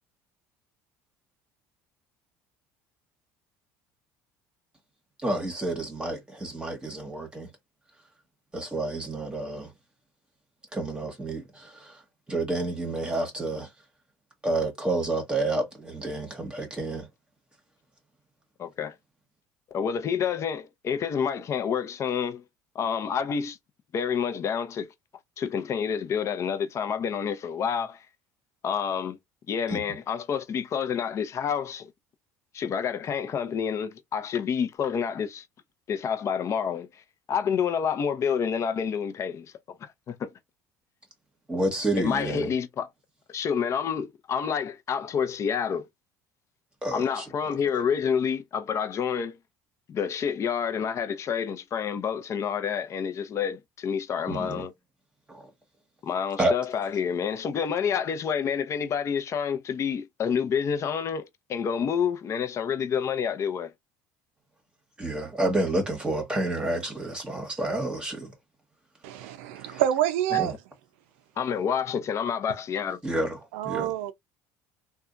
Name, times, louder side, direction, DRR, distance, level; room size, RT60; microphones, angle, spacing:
voice 1, 5.2-7.5 8.5-9.7 10.7-12.0 12.3-13.7 14.4-17.1 29.7-29.8 41.5-42.5 46.8-47.2 54.3-54.7 55.3-55.5 56.4-56.5 65.0-68.3 69.6-69.8 70.4-70.5 73.0-73.4 73.6-73.9, right 2 dB, 15° right, 1.1 m, -29 dB
voice 2, 18.6-18.9 19.7-22.4 22.7-23.6 23.9-24.9 25.4-28.0 28.6-29.2 29.5-31.9 32.5-35.4 35.9-37.0 37.3-40.3 42.0-42.9 43.3-45.9 46.9-49.4 49.9-54.7 56.0-63.7 70.3-70.4 71.4-73.0, left 7 dB, 45° left, 0.6 m, -28 dB
voice 3, 69.0-70.5 73.5-74.1, right 12 dB, 85° right, 0.5 m, -27 dB
2.7 x 2.3 x 2.4 m
supercardioid pair, 95°, 7 cm